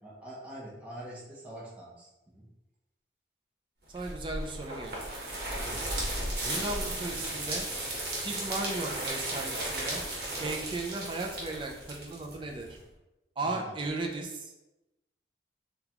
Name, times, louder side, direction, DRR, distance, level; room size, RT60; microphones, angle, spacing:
voice 1, 0.0-2.5 5.6-5.9 13.4-13.8, right 1 dB, 10° right, -7 dB, 0.8 m, -44 dB
voice 2, 3.9-5.1 6.4-7.7 8.2-10.0 10.4-12.8 13.4-14.5, right 2 dB, 30° right, 1 dB, 0.4 m, -36 dB
sound 1, 4.0-12.8, right 1 dB, 60° right, 1.0 m, -35 dB
3.8 x 2.3 x 2.9 m, 0.97 s
head